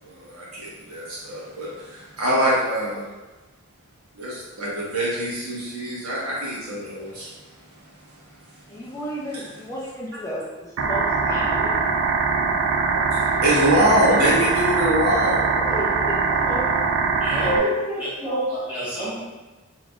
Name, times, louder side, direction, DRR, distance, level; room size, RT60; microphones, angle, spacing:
voice 1, 0.0-3.1 4.1-7.3 9.3-9.5 13.1-15.5, equal, 90° right, -6 dB, 1.3 m, -24 dB
voice 2, 8.7-10.5 10.8-11.7 15.5-16.9, equal, 15° left, -6 dB, 0.5 m, -32 dB
sound 1, 10.8-17.6, right 4 dB, 70° right, 0.4 m, -22 dB
voice 3, 17.2-19.1, equal, 5° right, -10 dB, 1.2 m, -26 dB
3.8 x 3.5 x 2.4 m, 1.2 s
head